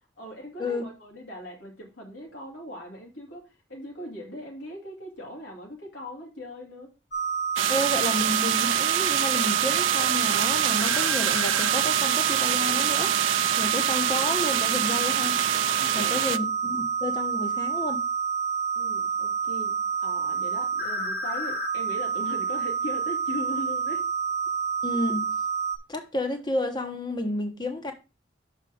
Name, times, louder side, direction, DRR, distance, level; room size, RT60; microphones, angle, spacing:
voice 1, 0.2-6.9 15.8-16.3 18.7-24.1, left 1 dB, 80° left, 2.6 m, -39 dB
sound 1, 7.1-25.8, right 6 dB, 60° left, 1.7 m, -28 dB
sound 2, 7.6-16.4, right 12 dB, 85° right, 0.4 m, -26 dB
voice 2, 7.7-13.1 13.6-15.4 15.9-18.0 24.8-25.3 25.9-27.9, left 1 dB, 20° left, 1.1 m, -31 dB
6.6 x 5.1 x 4.9 m
head